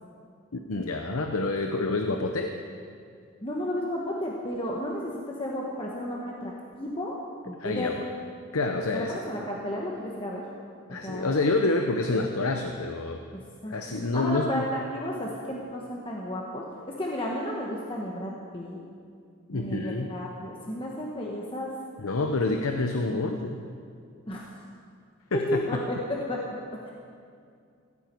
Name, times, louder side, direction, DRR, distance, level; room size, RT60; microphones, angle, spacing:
voice 1, 0.5-2.6 7.6-7.9 8.5-9.2 10.9-13.2 13.7-14.7 19.5-20.1 22.0-23.7 25.3-25.6, left 3 dB, 90° left, 4 dB, 0.8 m, -28 dB
voice 2, 3.4-7.1 7.4-8.0 8.9-10.4 10.9-11.4 13.6-13.7 14.1-18.8 19.5-21.7 23.1-23.5 24.3-24.4 25.3-26.4 26.8-26.9, left 1 dB, 25° left, -3 dB, 1.3 m, -33 dB
16.5 x 14.0 x 4.6 m, 2.3 s
head